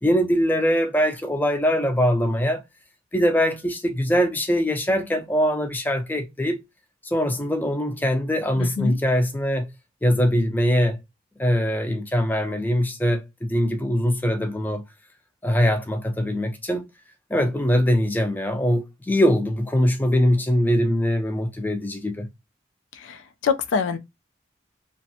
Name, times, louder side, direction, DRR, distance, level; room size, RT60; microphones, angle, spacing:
voice 1, 0.0-2.6 3.1-6.6 7.0-9.7 10.0-11.0 11.4-14.8 15.4-16.8 17.3-22.3, equal, 10° left, 0.3 m, -22 dB
voice 2, 8.6-9.0 22.9-24.0, left 6 dB, 85° left, 0.4 m, -25 dB
2.5 x 2.0 x 2.7 m
head